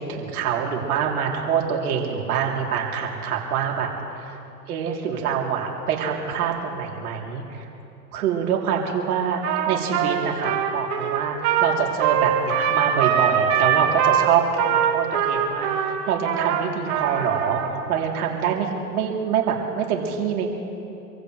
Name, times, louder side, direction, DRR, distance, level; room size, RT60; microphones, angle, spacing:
voice 1, 0.0-4.4 4.7-7.6 8.1-14.4 14.8-18.7 18.9-20.5, right 7 dB, 65° right, 0 dB, 3.2 m, -25 dB
Trumpet, 9.4-17.7, right 8 dB, 45° right, 2.8 m, -22 dB
27.0 x 15.5 x 3.2 m, 2.9 s
hypercardioid pair, 125°, 49 cm